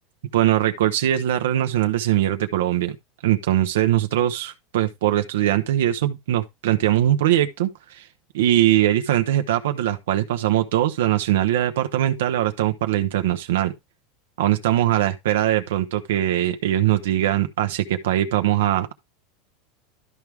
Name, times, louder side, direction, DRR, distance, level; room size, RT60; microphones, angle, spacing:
voice 1, 0.3-3.0 3.2-8.1 8.3-13.7 14.4-18.9, right 12 dB, 85° right, 0.8 m, -21 dB
12.0 x 4.8 x 3.5 m
supercardioid pair, 135°, 0 cm